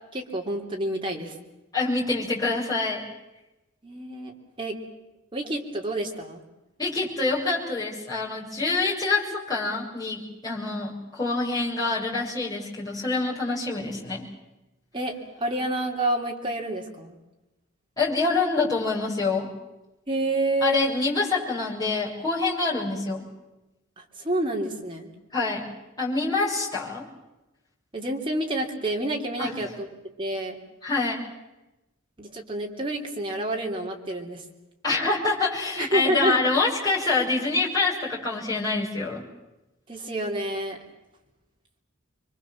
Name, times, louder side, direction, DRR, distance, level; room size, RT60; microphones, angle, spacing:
voice 1, 0.1-1.3 3.8-4.8 5.3-6.4 14.9-17.1 20.1-20.9 24.0-25.1 27.9-29.9 30.2-30.6 32.2-34.4 35.8-36.4 39.9-40.8, right 1 dB, 25° right, 0 dB, 3.4 m, -28 dB
voice 2, 1.7-3.0 6.8-14.2 18.0-19.5 20.6-23.2 25.3-25.7 26.0-27.0 29.4-29.5 30.8-31.2 34.8-39.2, left 3 dB, 20° left, -6 dB, 7.1 m, -26 dB
27.0 x 23.5 x 7.6 m, 0.98 s
head